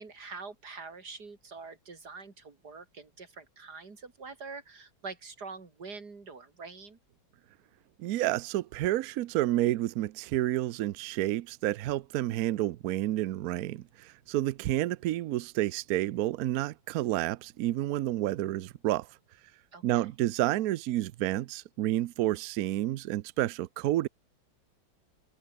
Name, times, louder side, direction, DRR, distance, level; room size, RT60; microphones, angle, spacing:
voice 1, 0.0-7.0 19.7-20.1, right 4 dB, 50° right, 3.7 m, -45 dB
voice 2, 8.0-19.1 19.8-24.1, right 14 dB, 75° right, 0.8 m, -30 dB
omnidirectional pair, 2.2 m